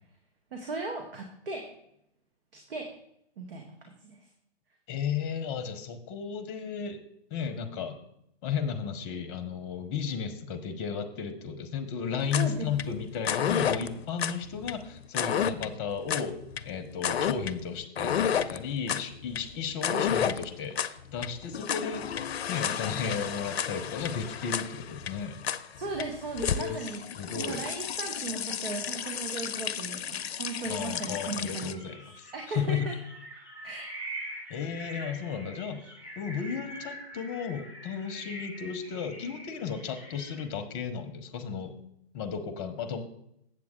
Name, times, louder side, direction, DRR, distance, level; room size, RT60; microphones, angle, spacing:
voice 1, 0.5-1.7 2.5-2.9 3.4-4.2 12.4-12.7 25.8-32.0 32.3-32.9 33.6-33.9, right 3 dB, 60° right, 2 dB, 1.6 m, -37 dB
voice 2, 4.9-7.0 7.3-8.0 8.4-16.4 16.6-22.0 22.5-25.4 26.5-26.8 27.1-27.6 30.7-32.9 34.5-35.8 36.2-41.8 42.1-43.0, left 6 dB, 25° left, 10 dB, 0.9 m, -34 dB
sound 1, 12.2-31.7, left 8 dB, 70° left, 0.6 m, -32 dB
sound 2, 30.4-40.4, right 1 dB, 5° right, 2.8 m, -44 dB
7.9 x 7.5 x 3.7 m, 0.75 s
hypercardioid pair, 140°, 32 cm